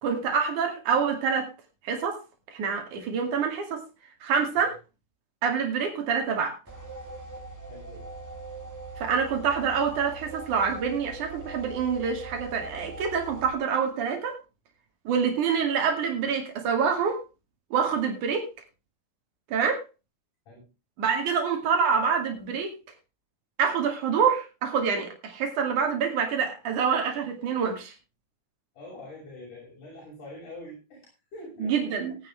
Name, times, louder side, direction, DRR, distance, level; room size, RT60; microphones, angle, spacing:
voice 1, 0.0-1.5 1.8-2.2 2.5-3.8 4.2-4.8 5.4-6.6 9.0-14.4 15.1-17.2 17.7-18.5 19.5-19.8 21.0-22.8 23.6-27.9 31.6-32.2, right 6 dB, 80° right, 3 dB, 3.8 m, -26 dB
sound 1, 6.7-13.5, right 2 dB, 10° right, 1.5 m, -41 dB
voice 2, 7.7-8.1 20.5-20.7 28.7-31.8, left 1 dB, 90° left, -3 dB, 8.0 m, -44 dB
18.0 x 9.9 x 3.4 m, 0.28 s
omnidirectional pair, 3.5 m